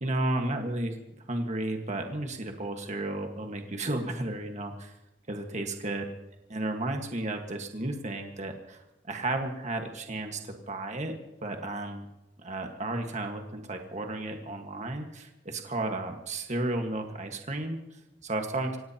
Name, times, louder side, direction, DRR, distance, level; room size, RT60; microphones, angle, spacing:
voice 1, 0.0-4.9 5.3-6.0 6.5-12.0 12.4-18.8, right 2 dB, 40° right, 4 dB, 1.6 m, -33 dB
26.0 x 17.0 x 2.9 m, 0.95 s
head